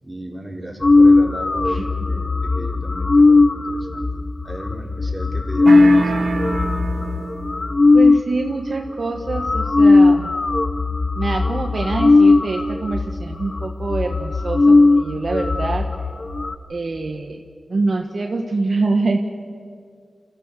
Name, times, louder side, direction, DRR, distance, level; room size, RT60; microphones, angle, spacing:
voice 1, 0.0-6.3, right 1 dB, 15° right, -1 dB, 4.2 m, -35 dB
sound 1, 0.8-8.2 8.9-9.0 9.2-16.6, left 3 dB, 45° left, 0.9 m, -17 dB
sound 2, 5.7-7.6, right 3 dB, 80° right, 2.0 m, -24 dB
voice 2, 7.9-10.3 11.1-15.9 16.7-17.4 17.7-19.2, right 3 dB, 60° right, 3 dB, 1.3 m, -25 dB
27.0 x 15.5 x 6.9 m, 2.2 s
cardioid pair, 55°, 0 cm